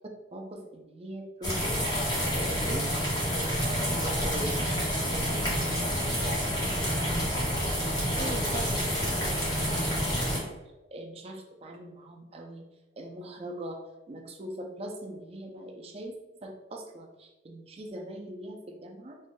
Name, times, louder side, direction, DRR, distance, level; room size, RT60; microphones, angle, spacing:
voice 1, 0.3-1.7 2.3-2.9 3.3-4.6 5.1-6.0 6.6-10.5 10.9-12.7 13.0-13.8 14.1-19.2, right 1 dB, 35° right, 2 dB, 0.4 m, -41 dB
sound 1, 1.4-10.4, equal, 20° left, 0.9 m, -28 dB
4.5 x 2.6 x 2.2 m, 1.0 s
head